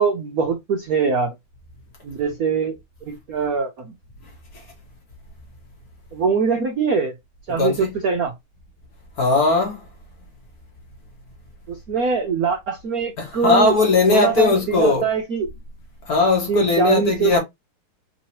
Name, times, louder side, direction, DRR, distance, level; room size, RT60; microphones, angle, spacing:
voice 1, 0.0-1.3 2.0-2.8 3.1-3.9 6.1-7.1 7.5-8.3 11.7-13.7 14.1-15.5 16.5-17.4, right 5 dB, 65° right, 0.9 m, -22 dB
voice 2, 7.5-7.9 9.2-9.9 13.2-15.1 16.0-17.4, left 3 dB, 50° left, 1.6 m, -18 dB
3.8 x 2.8 x 2.9 m
omnidirectional pair, 2.4 m